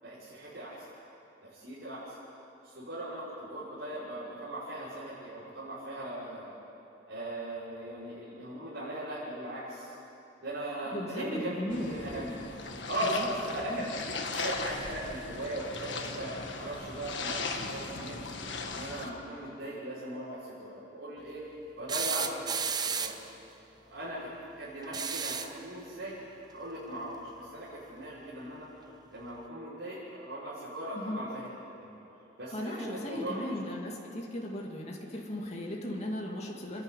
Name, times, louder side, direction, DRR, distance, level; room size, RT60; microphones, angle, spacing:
voice 1, 0.0-0.9 1.4-2.2 2.6-6.5 7.1-10.0 10.4-12.4 12.9-14.0 14.3-18.2 18.7-21.4 21.8-23.2 23.8-24.2 24.6-26.2 26.5-28.7 29.1-31.5 31.8-31.9 32.4-33.6, right 1 dB, 65° right, -11 dB, 5.9 m, -38 dB
voice 2, 10.9-12.0 13.0-13.8 30.9-31.2 32.5-36.8, left 1 dB, 35° left, -1 dB, 2.4 m, -37 dB
sound 1, 11.7-19.1, left 4 dB, 70° left, 1.6 m, -38 dB
sound 2, 21.9-23.3 24.8-25.6 27.3-27.4 28.8-28.9, right 6 dB, 20° right, 0.7 m, -33 dB
29.5 x 11.0 x 9.3 m, 3.0 s
head